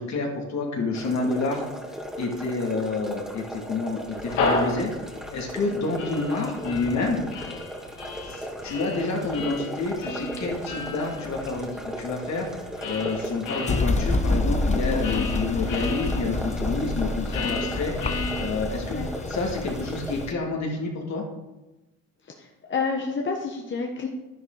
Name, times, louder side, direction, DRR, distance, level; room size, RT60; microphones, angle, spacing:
voice 1, 0.0-1.6 2.2-4.9 5.3-7.2 8.3-12.5 12.9-17.9 18.4-19.0 19.3-21.2, left 3 dB, 65° left, 0 dB, 2.8 m, -28 dB
sound 1, 0.9-20.2, equal, ahead, 2.3 m, -37 dB
sound 2, 4.0-13.8 14.5-18.9, left 3 dB, 90° left, 2.4 m, -33 dB
sound 3, 13.7-20.3, left 2 dB, 25° left, 0.8 m, -28 dB
voice 2, 22.2-24.1, left 4 dB, 40° left, 1 dB, 1.4 m, -29 dB
11.0 x 10.5 x 4.1 m, 1.0 s
cardioid pair, 90°, 30 cm